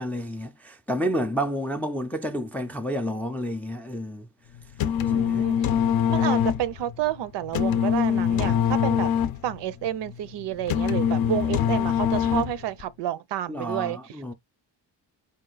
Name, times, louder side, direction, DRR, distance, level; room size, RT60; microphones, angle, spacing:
voice 1, 0.0-4.3 5.1-5.4 13.5-14.3, equal, 5° left, 0.3 m, -30 dB
sound 1, 4.6-12.8, left 8 dB, 55° left, 0.5 m, -24 dB
voice 2, 5.0-5.6 6.1-9.1 9.4-14.3, right 12 dB, 70° right, 0.6 m, -30 dB
5.2 x 2.4 x 3.8 m
cardioid pair, 150°, 43 cm